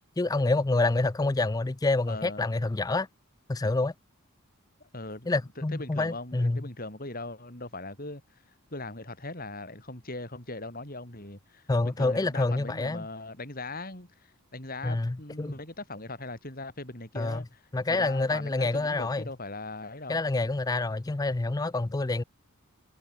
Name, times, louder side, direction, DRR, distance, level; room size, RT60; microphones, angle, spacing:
voice 1, 0.2-3.1 3.5-3.9 5.3-6.6 11.7-13.1 14.8-15.5 17.2-17.4 17.7-19.3 20.1-22.2, left 2 dB, 15° left, 0.4 m, -27 dB
voice 2, 2.1-2.5 4.8-8.2 8.7-17.6 17.9-20.2, left 2 dB, 40° left, 6.7 m, -40 dB
head